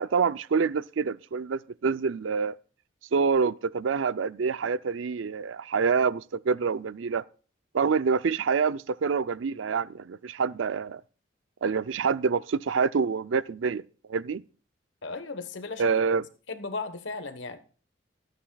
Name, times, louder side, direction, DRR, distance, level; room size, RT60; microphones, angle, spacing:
voice 1, 0.0-2.5 3.1-7.2 7.7-11.0 11.6-13.8 14.1-14.4 15.8-16.2, right 5 dB, 90° right, 0.5 m, -26 dB
voice 2, 15.0-15.9 16.5-17.6, left 3 dB, 80° left, 1.2 m, -36 dB
24.0 x 9.1 x 2.3 m
head